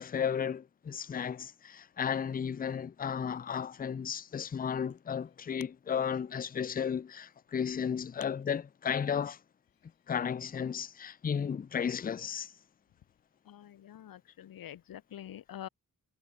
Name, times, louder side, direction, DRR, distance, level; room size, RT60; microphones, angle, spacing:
voice 1, 0.0-9.4 10.1-12.5, left 7 dB, 25° left, 0.4 m, -34 dB
voice 2, 13.5-15.7, left 11 dB, 90° left, 0.8 m, -46 dB
wide cardioid pair, 105°, 33 cm